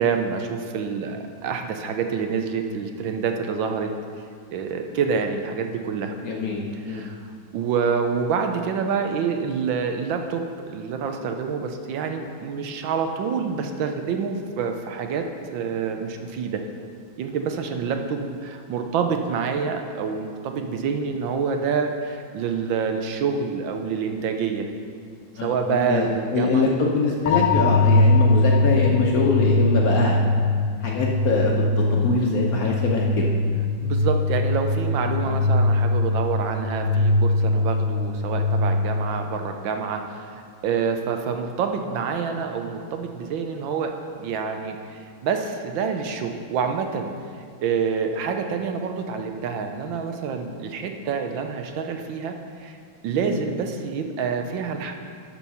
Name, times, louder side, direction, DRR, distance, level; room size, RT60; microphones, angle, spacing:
voice 1, 0.0-3.9 4.5-6.2 6.9-16.6 17.2-24.7 25.4-26.7 33.8-43.9 44.2-47.1 47.6-52.3 52.6-52.8 53.0-54.9, right 6 dB, 75° right, 5 dB, 1.4 m, -27 dB
voice 2, 6.2-7.0 25.4-30.2 30.8-31.5 31.9-33.3 53.2-53.4, left 3 dB, 60° left, -1 dB, 1.0 m, -23 dB
sound 1, 27.3-39.2, left 2 dB, 75° left, 1.3 m, -21 dB
12.5 x 4.7 x 5.5 m, 2.1 s
omnidirectional pair, 2.3 m